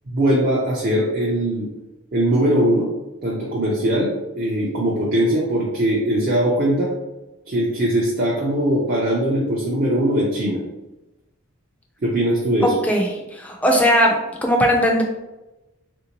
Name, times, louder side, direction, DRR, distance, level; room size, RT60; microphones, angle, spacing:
voice 1, 0.1-1.7 2.1-2.9 3.2-6.9 7.5-10.6 12.0-12.7, right 1 dB, 45° right, -4 dB, 0.5 m, -20 dB
voice 2, 12.6-14.1 14.4-15.0, equal, 5° left, 1 dB, 0.4 m, -18 dB
3.4 x 2.6 x 2.9 m, 1.0 s
head